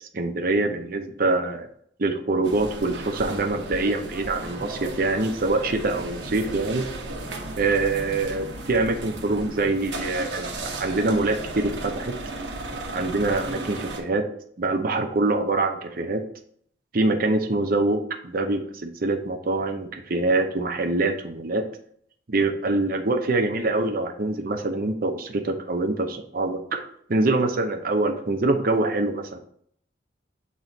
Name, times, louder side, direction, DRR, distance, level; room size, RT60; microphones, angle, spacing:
voice 1, 0.1-1.7 2.0-6.9 7.5-10.5 10.8-12.2 12.9-14.3 14.6-16.2 16.9-19.9 20.1-21.7 22.3-29.4, right 2 dB, 55° right, 5 dB, 0.7 m, -24 dB
sound 1, 2.4-14.0, right 2 dB, 85° right, 1.1 m, -35 dB
7.6 x 3.1 x 4.0 m, 0.63 s
head